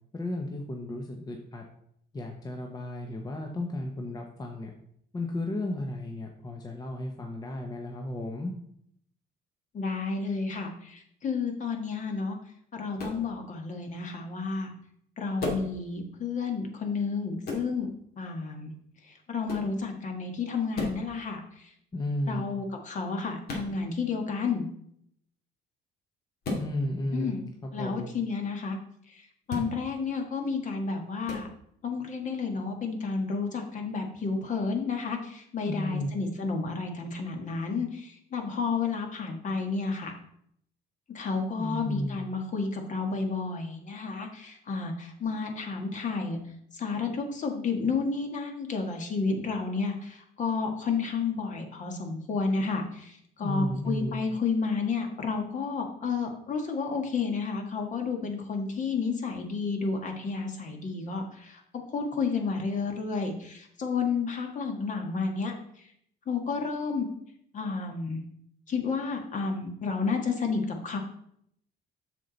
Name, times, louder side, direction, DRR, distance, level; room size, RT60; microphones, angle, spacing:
voice 1, 0.1-1.6 2.1-4.7 5.1-8.5 21.9-22.5 26.5-27.4 27.6-28.1 35.7-36.1 41.6-42.2 53.4-54.2, left 1 dB, 20° left, 2 dB, 0.9 m, -33 dB
voice 2, 9.7-12.4 12.7-14.7 15.2-17.9 18.2-18.7 19.1-21.7 22.3-24.6 27.1-27.5 27.7-28.8 29.1-29.2 29.5-31.5 31.8-40.1 41.1-46.4 46.7-65.5 66.3-67.1 67.5-68.2 68.7-71.0, left 4 dB, 45° left, 3 dB, 1.5 m, -31 dB
sound 1, 13.0-13.2 15.4-15.7 17.4-17.7 19.5-19.7 20.7-21.0 23.5-23.7 26.4-26.7 29.4-29.7 31.3-31.5, left 2 dB, 60° left, 2.5 m, -33 dB
7.4 x 6.7 x 4.0 m, 0.70 s
cardioid pair, 125°, 18 cm